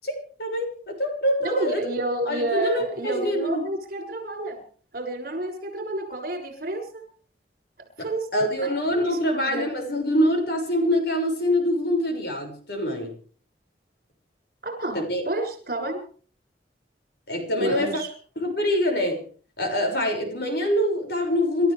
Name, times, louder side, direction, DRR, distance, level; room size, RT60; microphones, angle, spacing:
voice 1, 0.0-1.9 2.2-3.7 8.3-13.1 14.9-15.2 17.3-18.0 18.4-19.3 19.6-21.7, equal, 60° left, 3 dB, 6.5 m, -25 dB
voice 2, 1.4-4.6 4.9-7.0 8.0-8.3 8.6-8.7 9.0-9.7 14.6-15.0 15.2-16.0 17.6-18.1, right 1 dB, 55° right, 4 dB, 7.2 m, -30 dB
29.0 x 14.0 x 3.5 m, 0.43 s
head